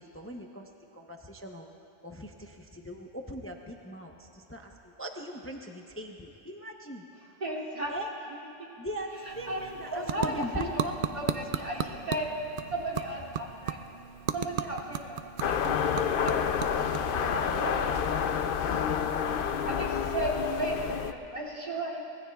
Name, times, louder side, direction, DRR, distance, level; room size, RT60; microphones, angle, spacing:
voice 1, 0.0-1.7 2.0-7.0 7.9-8.1 8.8-11.4 11.8-12.2, equal, 15° left, 2 dB, 0.5 m, -40 dB
voice 2, 7.4-7.9 9.2-9.6 9.9-10.8 11.1-12.3 12.7-13.9 14.3-15.2 15.5-19.0 19.4-22.0, right 1 dB, 30° right, -3 dB, 2.8 m, -36 dB
sound 1, 9.1-18.5, right 8 dB, 85° right, 0.4 m, -37 dB
sound 2, 15.4-21.1, left 7 dB, 60° left, 0.6 m, -29 dB
24.0 x 20.5 x 2.3 m, 2.8 s
omnidirectional pair, 1.4 m